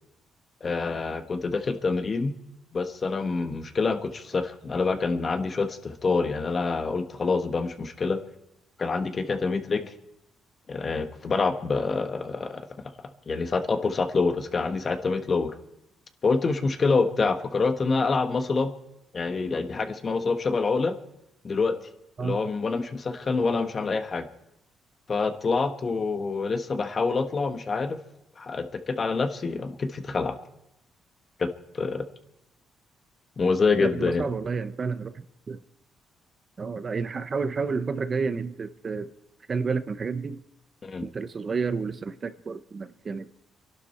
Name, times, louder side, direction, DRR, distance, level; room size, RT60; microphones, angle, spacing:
voice 1, 0.6-2.3 2.7-8.2 8.8-9.9 10.7-12.6 13.3-15.5 16.2-18.7 19.1-21.0 21.4-21.8 22.2-24.3 25.1-28.0 28.4-30.4 31.4-31.5 31.7-32.1 33.4-34.2 40.8-41.1, left 4 dB, 40° left, 9 dB, 1.3 m, -26 dB
voice 2, 33.8-35.6 36.6-39.1 39.5-40.4 41.0-43.3, right 5 dB, 40° right, 13 dB, 0.8 m, -30 dB
27.0 x 11.5 x 4.3 m, 0.84 s
cardioid pair, 90°, 0 cm